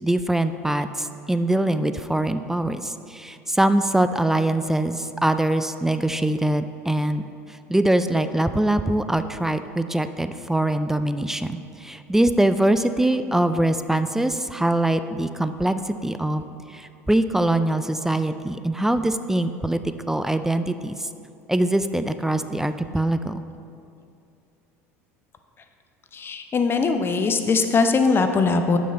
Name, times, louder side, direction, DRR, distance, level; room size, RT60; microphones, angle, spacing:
voice 1, 0.0-7.2 7.7-16.4 16.7-19.8 20.1-21.1 21.5-23.4, right 1 dB, 5° right, 10 dB, 0.3 m, -23 dB
voice 2, 26.1-28.8, left 4 dB, 30° left, 7 dB, 0.7 m, -21 dB
7.9 x 6.1 x 3.9 m, 2.5 s
hypercardioid pair, 75°, 8 cm